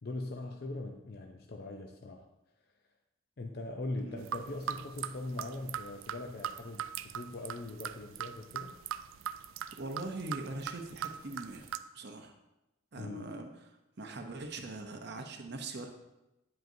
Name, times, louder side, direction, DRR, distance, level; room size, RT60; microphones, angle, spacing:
voice 1, 0.0-2.3 3.4-8.7 13.0-13.3, left 2 dB, 50° left, 3 dB, 0.5 m, -41 dB
sound 1, 4.2-11.8, right 9 dB, 75° right, 0.3 m, -40 dB
voice 2, 9.8-11.7 11.9-12.3 12.9-13.5 14.0-15.9, right 2 dB, 55° right, 5 dB, 0.7 m, -41 dB
9.2 x 7.7 x 2.7 m, 0.94 s
head